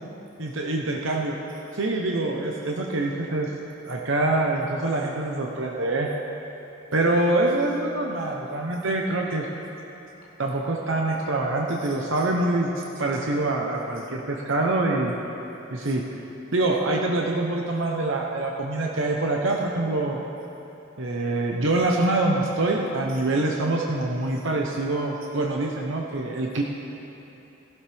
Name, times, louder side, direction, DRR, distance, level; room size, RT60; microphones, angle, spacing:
voice 1, 0.4-1.4 1.7-3.5 3.8-6.1 6.9-9.5 10.4-15.1 15.7-16.0 16.5-20.2 21.0-26.6, right 2 dB, 65° right, -1 dB, 1.0 m, -25 dB
18.5 x 12.0 x 3.5 m, 3.0 s
head